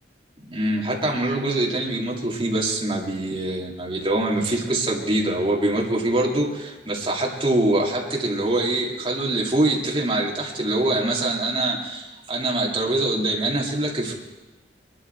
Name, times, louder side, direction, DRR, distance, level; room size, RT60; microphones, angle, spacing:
voice 1, 0.4-14.1, right 2 dB, 30° right, -2 dB, 2.4 m, -24 dB
22.5 x 11.5 x 4.4 m, 1.1 s
head